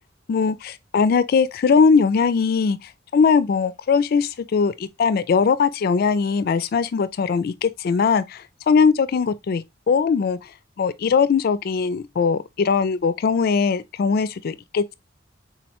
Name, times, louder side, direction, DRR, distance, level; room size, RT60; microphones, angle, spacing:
voice 1, 0.3-10.4 10.8-14.9, left 5 dB, 50° left, 0.3 m, -20 dB
3.8 x 3.0 x 2.8 m
head